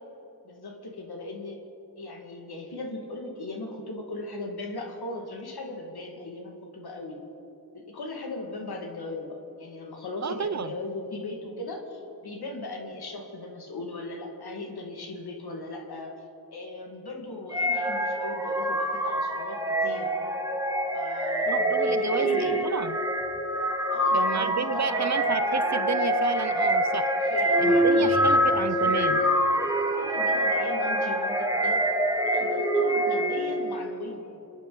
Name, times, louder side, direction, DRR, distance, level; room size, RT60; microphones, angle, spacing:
voice 1, 0.4-1.6 2.0-7.2 7.7-16.1 16.5-20.1 20.9-22.7 23.9-25.4 27.1-29.3 30.0-31.8 32.2-34.4, left 2 dB, 85° left, 1 dB, 1.9 m, -38 dB
voice 2, 10.2-10.7 21.5-23.0 24.1-27.1 27.6-29.2, right 6 dB, 45° right, 12 dB, 0.6 m, -31 dB
sound 1, 17.5-33.7, equal, 10° right, 1.4 m, -25 dB
27.0 x 9.4 x 3.9 m, 3.0 s
wide cardioid pair, 70°, 37 cm